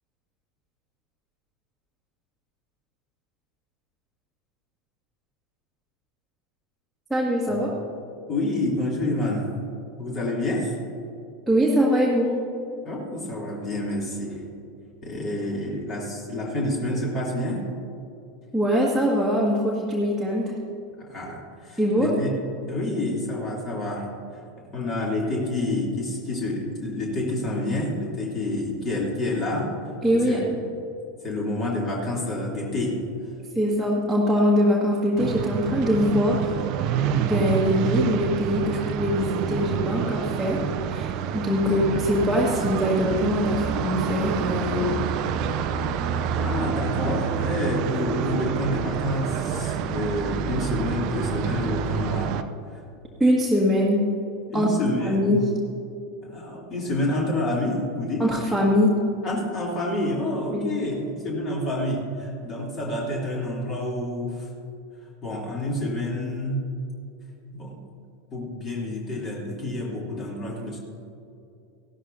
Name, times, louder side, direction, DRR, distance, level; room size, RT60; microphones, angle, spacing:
voice 1, 7.1-7.7 11.5-12.3 18.5-20.5 21.8-22.1 30.0-30.4 33.6-36.5 36.8-40.6 40.9-45.0 53.2-54.1 54.5-54.7 55.1-55.5 58.2-58.9 60.5-60.7, equal, ahead, -4 dB, 1.8 m, -22 dB
voice 2, 8.3-9.4 10.0-10.7 12.8-14.4 15.0-17.6 21.1-22.3 22.7-24.1 24.7-29.7 30.0-30.4 31.2-33.0 41.6-41.9 46.4-52.3 54.5-55.3 56.2-58.3 59.2-64.5 65.2-66.6 67.5-67.8 68.3-70.8, left 1 dB, 35° left, -3 dB, 3.1 m, -28 dB
sound 1, 35.2-52.4, right 8 dB, 45° right, 0.5 m, -28 dB
16.5 x 12.5 x 2.7 m, 2.7 s
figure-of-eight pair, 85°, 0 cm